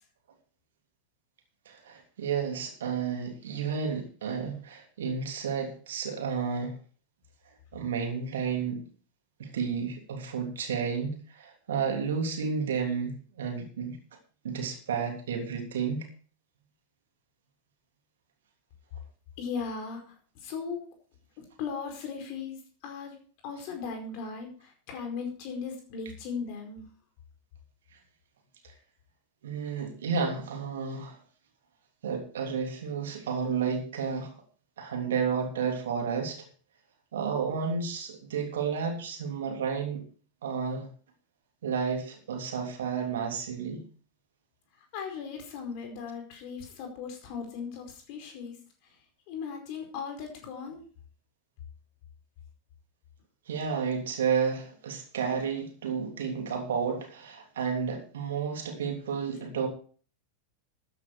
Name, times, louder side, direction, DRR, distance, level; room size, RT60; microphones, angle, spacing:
voice 1, 1.6-6.8 7.7-8.8 9.4-14.0 14.4-16.1 29.4-31.2 32.0-34.4 34.8-36.4 37.1-40.1 40.4-40.9 41.6-43.8 53.5-59.7, right 6 dB, 60° right, 3 dB, 3.1 m, -31 dB
voice 2, 19.4-20.9 21.4-23.2 23.4-26.9 44.7-48.6 48.8-49.0 49.3-50.8, left 5 dB, 45° left, 3 dB, 4.8 m, -38 dB
13.5 x 9.5 x 4.8 m, 0.42 s
figure-of-eight pair, 90°, 0 cm